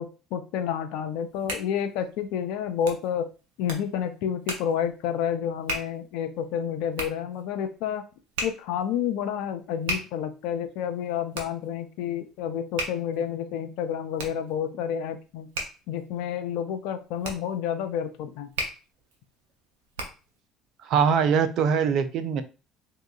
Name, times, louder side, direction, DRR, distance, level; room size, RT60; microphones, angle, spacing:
voice 1, 0.0-3.3 3.6-8.0 8.4-15.5 15.9-18.5, left 8 dB, 70° left, 8 dB, 0.5 m, -30 dB
Hands, 1.1-20.4, right 2 dB, 80° right, 0.8 m, -38 dB
voice 2, 20.8-22.4, right 7 dB, 60° right, 11 dB, 0.5 m, -22 dB
3.5 x 2.8 x 2.4 m, 0.32 s
hypercardioid pair, 65°, 0 cm